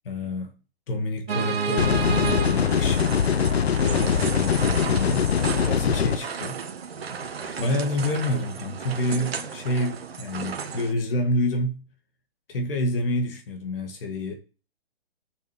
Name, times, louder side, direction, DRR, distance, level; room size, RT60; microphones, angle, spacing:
voice 1, 0.0-0.5 0.9-3.2 3.8-5.3 5.6-6.5 7.6-11.8 12.5-14.3, left 1 dB, 60° left, 2.0 m, -28 dB
sound 1, 1.3-10.9, right 6 dB, 70° right, 1.5 m, -32 dB
sound 2, 1.8-6.2, left 7 dB, 80° left, 0.9 m, -22 dB
6.9 x 6.4 x 7.1 m
hypercardioid pair, 140°, 31 cm